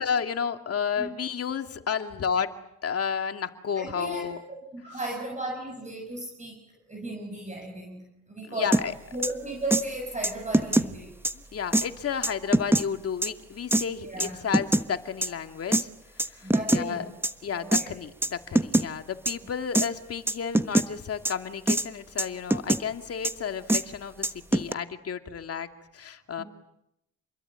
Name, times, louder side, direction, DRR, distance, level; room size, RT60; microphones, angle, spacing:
voice 1, 0.0-2.5 2.8-4.4 8.5-8.9 11.3-15.9 16.1-17.1 17.4-25.7 25.9-26.4, left 7 dB, 50° left, 7 dB, 2.4 m, -32 dB
voice 2, 3.7-4.2 4.7-6.6 6.9-8.8 9.1-11.2 14.0-14.4 16.4-17.1 17.5-17.9 26.4-26.5, right 2 dB, 25° right, 2 dB, 6.6 m, -35 dB
sound 1, 8.7-8.8 9.2-9.3 9.7-9.8 10.2-10.9 11.2-11.3 11.7-11.9 12.2-12.8 13.2-13.3 13.7-13.8 14.2-14.8 15.2-15.3 15.7-15.8 16.2-16.8 17.2-17.3 17.7-17.8 18.2-18.3 18.5-18.9 19.2-19.3 19.7-19.9 20.3-20.9 21.2-21.3 21.7-21.9 22.2-22.8 23.2-23.3 23.7-23.8 24.2-24.7, right 1 dB, 5° right, 1.2 m, -23 dB
29.0 x 22.0 x 9.0 m, 0.81 s
cardioid pair, 90°, 30 cm